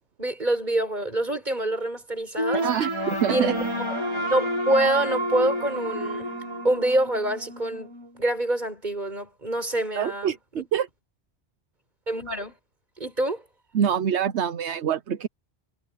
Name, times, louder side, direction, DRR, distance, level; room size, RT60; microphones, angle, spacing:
voice 1, 0.2-2.7 3.3-3.6 4.3-6.3 6.6-10.7 12.1-12.5 13.0-13.4, right 1 dB, 40° right, 4.9 m, -26 dB
sound 1, 2.4-7.4, right 1 dB, 25° right, 4.7 m, -29 dB
voice 2, 2.5-3.5 10.0-10.9 13.7-15.3, right 9 dB, 80° right, 1.1 m, -25 dB
Wind instrument woodwind instrument, 3.3-8.3, right 2 dB, 60° right, 1.9 m, -38 dB
omnidirectional pair, 1.1 m